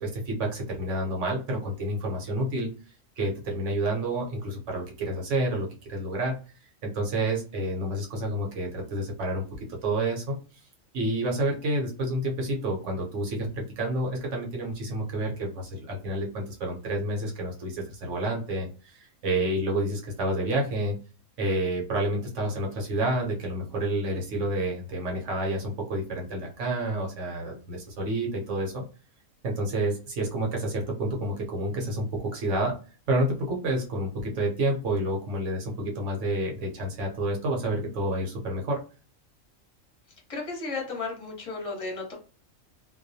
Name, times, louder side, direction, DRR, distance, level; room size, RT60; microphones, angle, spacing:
voice 1, 0.0-2.7 3.2-6.4 6.8-10.4 10.9-21.0 21.4-28.8 29.4-32.7 33.1-38.8, right 1 dB, 65° right, 0 dB, 1.0 m, -29 dB
voice 2, 40.3-42.1, left 3 dB, 30° left, -1 dB, 0.8 m, -34 dB
2.3 x 2.2 x 2.6 m, 0.35 s
omnidirectional pair, 1.4 m